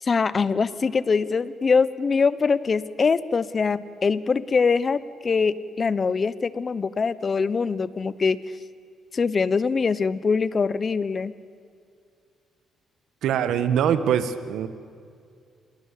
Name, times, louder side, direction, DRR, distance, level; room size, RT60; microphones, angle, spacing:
voice 1, 0.0-8.4 9.1-11.3, left 5 dB, 40° left, 17 dB, 1.1 m, -23 dB
voice 2, 13.2-14.7, right 8 dB, 80° right, 12 dB, 1.7 m, -23 dB
29.0 x 22.0 x 8.6 m, 2.3 s
cardioid pair, 90°, 0 cm